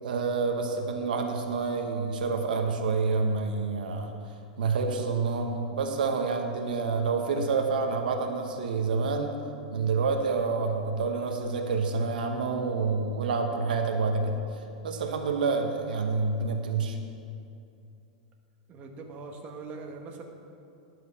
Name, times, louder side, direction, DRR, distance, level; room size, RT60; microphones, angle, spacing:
voice 1, 0.0-4.1 4.6-9.4 9.7-14.4 14.8-17.0, right 4 dB, 85° right, 4 dB, 1.0 m, -28 dB
voice 2, 18.7-20.2, right 4 dB, 30° right, 2 dB, 1.0 m, -42 dB
11.5 x 4.6 x 6.8 m, 2.6 s
supercardioid pair, 135°, 5 cm